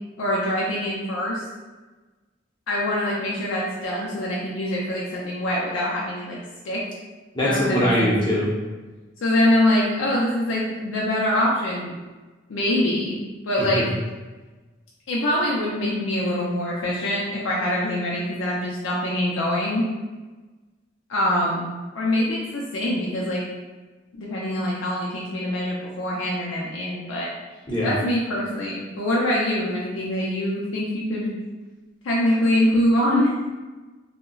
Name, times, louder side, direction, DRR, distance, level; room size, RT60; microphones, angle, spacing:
voice 1, 0.2-1.4 2.7-6.8 7.4-8.1 9.2-11.9 12.5-13.2 13.5-13.9 15.1-19.9 21.1-21.7 21.9-23.4 24.1-27.3 27.8-31.3 32.0-33.3, left 1 dB, 85° left, -5 dB, 0.5 m, -24 dB
voice 2, 7.3-8.5 13.6-13.8 27.7-27.9, equal, 25° left, -6 dB, 0.7 m, -22 dB
3.8 x 2.1 x 2.3 m, 1.2 s
head